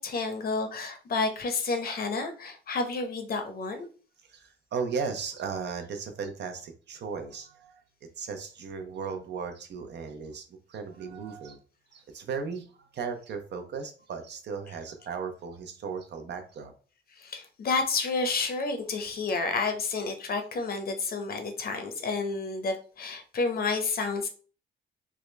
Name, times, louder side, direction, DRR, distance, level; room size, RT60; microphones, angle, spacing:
voice 1, 0.0-3.9 17.2-24.3, left 4 dB, 50° left, 6 dB, 0.8 m, -30 dB
voice 2, 4.2-7.8 8.2-11.6 11.9-16.7, right 5 dB, 60° right, 6 dB, 0.7 m, -36 dB
3.6 x 2.2 x 3.2 m, 0.39 s
cardioid pair, 90°, 20 cm